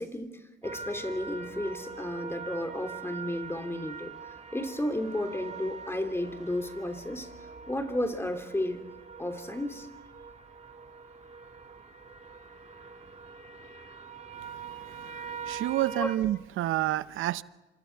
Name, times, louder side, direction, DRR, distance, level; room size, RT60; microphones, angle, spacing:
voice 1, 0.0-4.1 4.5-7.3 7.7-8.8 9.2-9.9 15.9-16.1, left 1 dB, 10° left, 3.0 m, -33 dB
sound 1, 0.6-16.2, right 5 dB, 35° right, 1.8 m, -43 dB
voice 2, 14.9-17.4, right 14 dB, 85° right, 0.7 m, -29 dB
27.5 x 26.5 x 4.6 m
cardioid pair, 90°, 20 cm